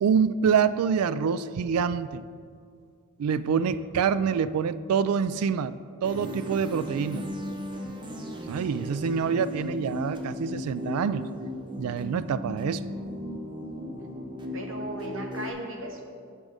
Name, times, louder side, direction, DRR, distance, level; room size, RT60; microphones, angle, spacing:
voice 1, 0.0-2.2 3.2-5.7 6.0-7.2 8.5-11.3 11.8-12.9, right 6 dB, 85° right, 15 dB, 0.3 m, -26 dB
sound 1, 6.0-15.5, left 1 dB, 20° right, 0.6 m, -36 dB
voice 2, 14.5-16.0, right 1 dB, 60° right, 2 dB, 1.1 m, -37 dB
7.5 x 6.2 x 5.1 m, 2.2 s
head